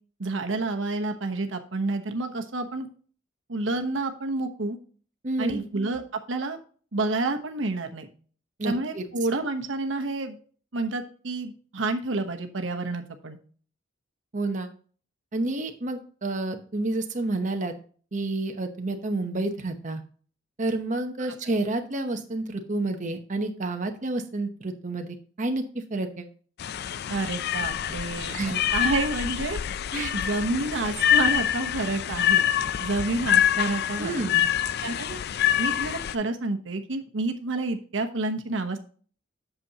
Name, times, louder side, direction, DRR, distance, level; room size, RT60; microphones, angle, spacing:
voice 1, 0.2-2.9 3.5-4.8 5.4-6.0 6.3-6.6 6.9-8.1 8.6-10.4 10.7-13.4 21.3-21.4 27.1-29.6 30.1-32.5 32.8-34.2 34.8-35.2 35.6-38.8, right 2 dB, 85° right, 6 dB, 1.0 m, -29 dB
voice 2, 5.2-5.6 8.6-9.0 14.3-14.7 15.3-17.8 18.1-20.0 20.6-26.3 28.3-28.6 29.9-30.1 34.0-34.4, right 2 dB, 40° right, 5 dB, 0.9 m, -29 dB
sound 1, 26.6-36.2, left 10 dB, 60° left, 0.4 m, -26 dB
8.2 x 7.0 x 2.8 m, 0.42 s
head